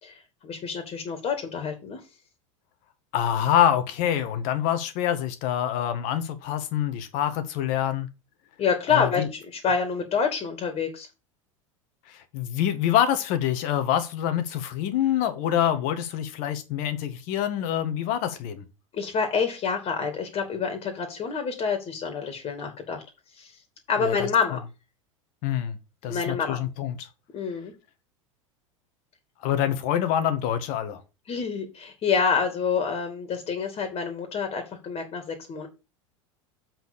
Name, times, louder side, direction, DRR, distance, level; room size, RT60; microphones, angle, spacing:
voice 1, 0.0-2.0 8.6-11.1 18.9-23.0 23.3-23.6 23.9-24.6 26.1-26.6 27.3-27.7 31.3-35.7, left 6 dB, 35° left, 2.6 m, -27 dB
voice 2, 3.1-8.1 8.9-9.3 12.1-18.6 24.0-24.3 25.4-25.8 26.0-27.1 29.4-31.0, left 10 dB, 55° left, 1.6 m, -26 dB
7.7 x 4.6 x 6.9 m
hypercardioid pair, 80°, 17 cm